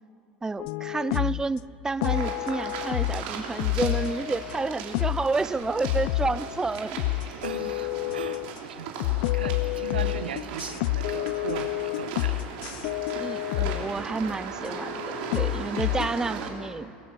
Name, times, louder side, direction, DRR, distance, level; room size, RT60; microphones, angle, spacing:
voice 1, 0.4-7.0 13.2-16.9, right 3 dB, 10° right, 18 dB, 0.4 m, -30 dB
sound 1, 0.6-1.5 2.0-3.3 3.6-5.3 5.6-6.6 7.0-8.6 9.0-13.9 14.6-16.1, left 20 dB, 65° left, 0.4 m, -29 dB
sound 2, 2.0-16.5, right 5 dB, 65° right, 3.6 m, -38 dB
voice 2, 7.4-9.0 9.3-12.5, right 8 dB, 85° right, 12 dB, 1.0 m, -38 dB
23.0 x 21.5 x 5.7 m, 2.7 s
hypercardioid pair, 80°, 5 cm